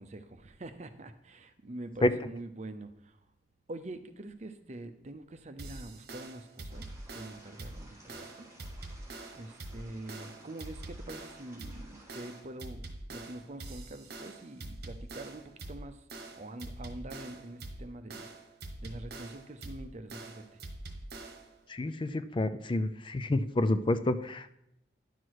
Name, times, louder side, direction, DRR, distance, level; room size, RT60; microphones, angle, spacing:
voice 1, 0.0-3.2 3.7-8.5 9.3-16.0 16.4-18.3 18.8-20.6 21.8-21.9, right 1 dB, 40° right, 9 dB, 0.7 m, -45 dB
sound 1, 5.6-21.6, right 2 dB, 60° right, 1.2 m, -45 dB
sound 2, 6.7-12.4, right 1 dB, 15° right, 2.9 m, -56 dB
voice 2, 21.7-24.6, left 1 dB, 30° left, 12 dB, 0.4 m, -29 dB
11.0 x 6.1 x 4.7 m, 0.78 s
head